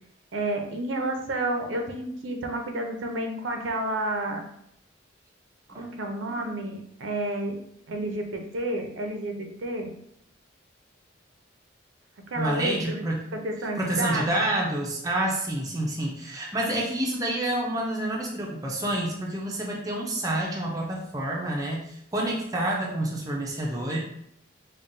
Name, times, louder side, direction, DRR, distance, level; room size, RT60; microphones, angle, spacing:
voice 1, 0.3-4.4 5.7-7.6 7.9-9.9 12.3-13.0 13.3-14.3, right 1 dB, 75° right, 3 dB, 0.6 m, -30 dB
voice 2, 12.4-13.2 13.8-24.0, right 1 dB, 20° right, -2 dB, 0.5 m, -28 dB
5.3 x 2.2 x 2.6 m, 0.72 s
head